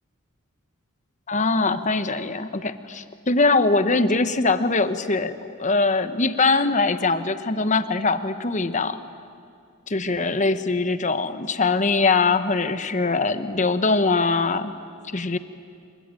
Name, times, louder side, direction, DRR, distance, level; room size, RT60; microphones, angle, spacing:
voice 1, 1.3-9.0 9.9-14.7 15.1-15.4, left 3 dB, 35° left, 11 dB, 1.0 m, -22 dB
26.5 x 23.0 x 9.0 m, 2.4 s
head